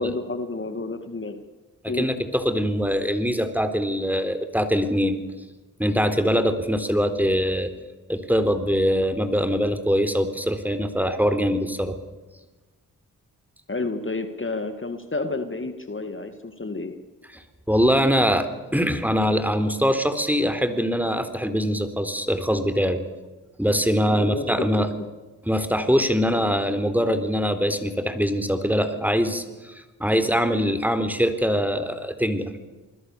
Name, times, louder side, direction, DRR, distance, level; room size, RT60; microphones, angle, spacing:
voice 1, 0.0-1.4 1.9-2.1 13.7-17.0 24.1-24.7 25.0-25.1, left 3 dB, 35° left, 7 dB, 2.5 m, -30 dB
voice 2, 1.8-5.2 5.8-7.7 8.1-12.0 17.3-17.4 17.7-18.5 18.7-23.0 23.6-24.9 25.5-32.6, equal, 5° right, 9 dB, 4.1 m, -23 dB
27.0 x 22.0 x 7.0 m, 1.2 s
supercardioid pair, 40°, 37 cm